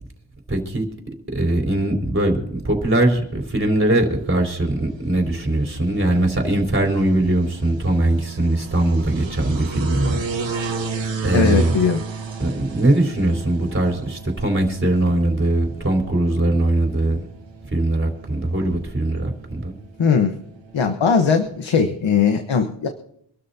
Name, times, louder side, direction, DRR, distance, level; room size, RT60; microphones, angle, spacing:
voice 1, 0.5-0.9 1.3-10.3 11.2-11.7 12.4-17.2 17.6-19.7, right 1 dB, 25° right, 1 dB, 4.3 m, -21 dB
sound 1, 3.5-21.6, right 4 dB, 80° right, 1.8 m, -35 dB
voice 2, 11.3-12.0 20.0-20.3 20.7-22.9, left 6 dB, 80° left, 5 dB, 1.3 m, -19 dB
26.5 x 13.0 x 2.8 m, 0.72 s
wide cardioid pair, 85°, 45 cm